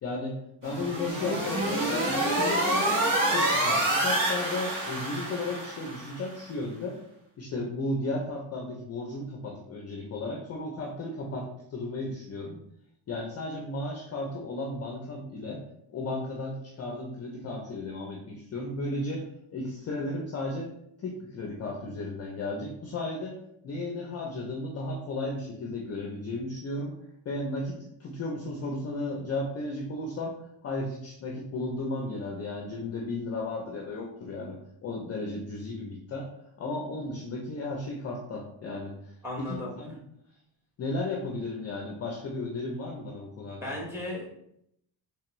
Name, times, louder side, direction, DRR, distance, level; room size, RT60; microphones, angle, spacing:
voice 1, 0.0-3.0 3.3-7.0 7.4-12.6 13.1-15.6 15.9-19.3 19.5-20.7 21.0-23.4 23.6-26.9 27.3-30.4 30.6-36.3 36.6-40.0 40.8-43.6, left 2 dB, 35° left, -1 dB, 0.4 m, -34 dB
sound 1, 0.6-6.2, right 1 dB, 45° right, 1.3 m, -27 dB
voice 2, 39.2-39.7 43.5-44.3, left 2 dB, 5° right, -4 dB, 1.0 m, -36 dB
3.3 x 3.3 x 3.0 m, 0.75 s
cardioid pair, 170°, 45 cm